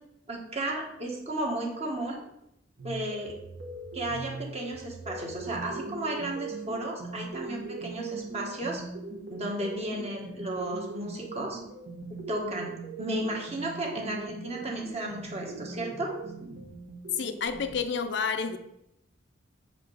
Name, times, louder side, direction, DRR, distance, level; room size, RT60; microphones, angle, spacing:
voice 1, 0.3-2.2 2.8-3.3 3.9-8.8 9.3-11.6 12.3-12.7 13.0-16.1, right 1 dB, 35° right, 1.7 m, -34 dB
sound 1, 2.8-17.7, right 3 dB, 60° right, 1.6 m, -40 dB
voice 2, 17.1-18.6, left 6 dB, 65° left, 0.5 m, -30 dB
6.6 x 5.0 x 4.8 m
head